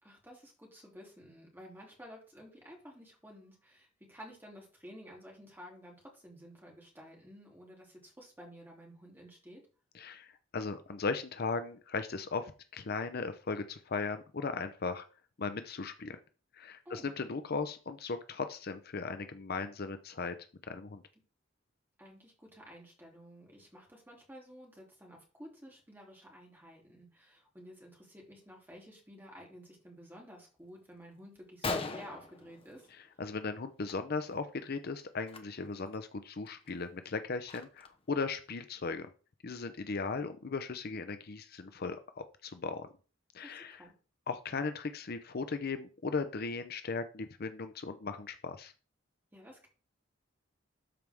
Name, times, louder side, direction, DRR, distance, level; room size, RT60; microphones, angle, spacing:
voice 1, 0.0-9.6 16.8-17.3 22.0-32.9 43.4-43.9 49.3-49.7, equal, 10° right, -1 dB, 3.0 m, -52 dB
voice 2, 9.9-15.0 15.4-16.2 16.5-20.3 20.7-21.0 33.2-39.1 39.4-42.9 43.3-43.8 44.3-48.7, left 4 dB, 50° left, 9 dB, 0.6 m, -37 dB
Gunshot gunfire, 30.9-31.0 31.4-31.5 31.6-33.2 33.6-33.9 34.2-34.4 35.2-35.4 35.9-36.0 36.5-38.0, left 3 dB, 30° left, 1.0 m, -40 dB
12.5 x 4.7 x 3.5 m, 0.37 s
head